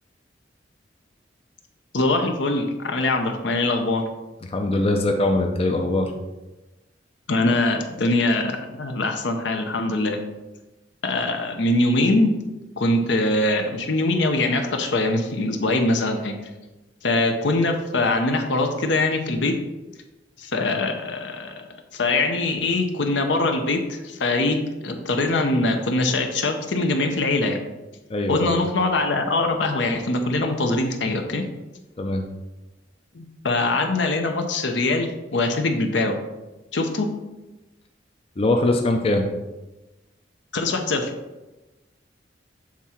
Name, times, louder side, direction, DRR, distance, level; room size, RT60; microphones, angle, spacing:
voice 1, 1.9-4.1 7.3-10.2 11.0-12.4 12.8-16.3 17.0-19.5 20.4-21.7 21.9-27.6 28.3-31.4 33.1-36.2 36.7-37.1 40.5-41.1, left 2 dB, 70° left, 5 dB, 0.8 m, -23 dB
voice 2, 4.5-6.1 28.1-28.5 32.0-32.2 38.4-39.3, left 2 dB, 35° left, 3 dB, 0.5 m, -22 dB
7.4 x 3.6 x 4.3 m, 1.1 s
head